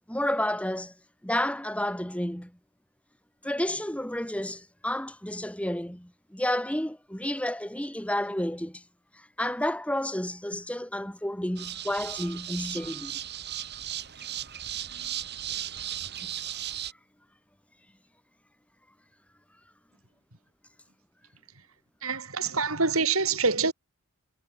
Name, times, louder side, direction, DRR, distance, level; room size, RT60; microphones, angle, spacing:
voice 1, 0.1-0.9 1.2-2.5 3.4-8.8 9.1-13.1, left 1 dB, 5° left, 3.2 m, -31 dB
sound 1, 11.6-16.9, right 11 dB, 50° right, 5.3 m, -36 dB
voice 2, 22.0-23.7, right 4 dB, 70° right, 7.1 m, -26 dB
head